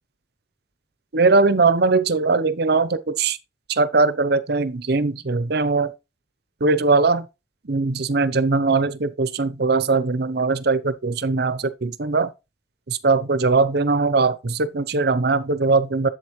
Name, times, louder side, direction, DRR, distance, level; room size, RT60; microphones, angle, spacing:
voice 1, 1.1-3.4 3.7-5.9 6.6-7.3 7.6-12.3 12.9-16.1, right 3 dB, 60° right, 0.8 m, -20 dB
8.0 x 7.9 x 3.1 m
head